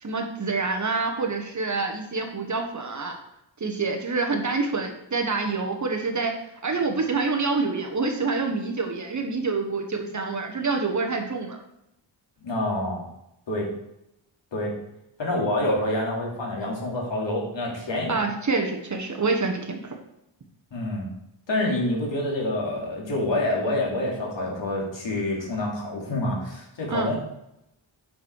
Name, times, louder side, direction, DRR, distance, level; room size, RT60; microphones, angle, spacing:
voice 1, 0.0-3.2 3.6-6.3 6.6-11.6 18.1-20.0 26.9-27.1, right 4 dB, 35° right, 3 dB, 1.4 m, -27 dB
voice 2, 12.4-13.1 13.5-13.7 14.5-14.7 15.2-18.2 20.7-21.1 21.5-27.2, left 1 dB, 65° left, -2 dB, 3.1 m, -27 dB
9.2 x 6.3 x 4.8 m, 0.83 s
wide cardioid pair, 125°, 47 cm